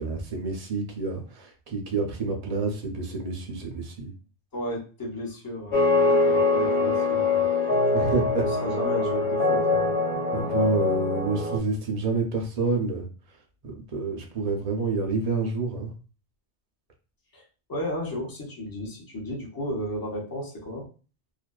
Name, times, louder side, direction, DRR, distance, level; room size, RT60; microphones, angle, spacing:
voice 1, 0.0-4.1 7.9-8.5 10.3-13.0 13.6-15.9, right 3 dB, 50° right, 1 dB, 0.5 m, -28 dB
voice 2, 4.5-7.5 8.6-10.0 17.3-17.4 17.7-20.9, equal, 25° left, -3 dB, 0.7 m, -34 dB
sound 1, 5.7-11.6, left 3 dB, 65° left, 0.9 m, -23 dB
2.5 x 2.2 x 2.2 m, 0.36 s
omnidirectional pair, 1.1 m